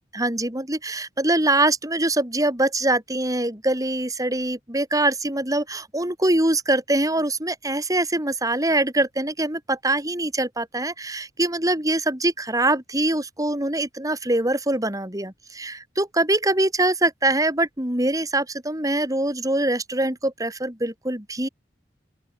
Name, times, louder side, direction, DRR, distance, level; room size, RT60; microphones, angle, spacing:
voice 1, 0.0-21.5, right 2 dB, 20° right, 5.3 m, -23 dB
open air
head